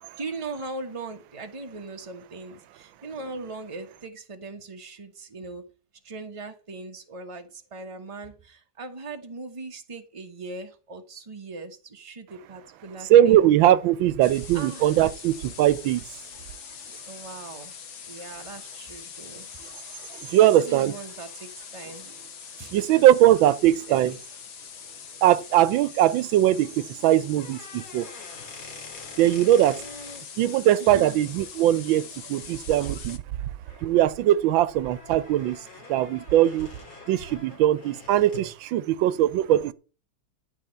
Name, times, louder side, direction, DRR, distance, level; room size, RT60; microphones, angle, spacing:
voice 1, 0.0-5.6 6.0-13.5 14.5-15.0 17.1-17.7 18.1-19.5 20.3-22.1 22.6-22.7 23.6-24.0 29.6-30.2 30.8-31.2, right 3 dB, 20° right, 1.1 m, -39 dB
voice 2, 13.1-16.0 20.3-20.9 22.7-24.1 25.2-28.1 29.2-29.8 30.4-33.2 33.8-35.6 35.9-36.7 37.1-39.7, right 12 dB, 85° right, 1.5 m, -20 dB
sound 1, 14.2-33.2, left 8 dB, 65° left, 1.5 m, -43 dB
sound 2, 27.3-30.2 32.4-32.5 32.8-33.1 33.6-38.5, left 4 dB, 45° left, 2.9 m, -46 dB
12.5 x 4.2 x 8.0 m
omnidirectional pair, 2.1 m